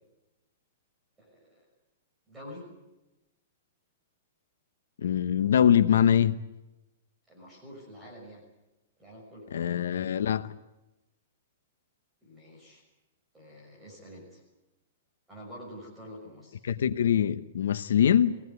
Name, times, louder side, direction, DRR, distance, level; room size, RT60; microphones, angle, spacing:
voice 1, 1.2-1.6 2.3-2.7 7.3-8.4 9.0-9.5 12.2-12.8 13.3-14.4 15.3-16.6, equal, 5° right, 5.7 m, -47 dB
voice 2, 5.0-6.4 9.5-10.5 16.6-18.4, left 9 dB, 85° left, 1.0 m, -23 dB
23.0 x 18.0 x 9.6 m
hypercardioid pair, 175°, 0 cm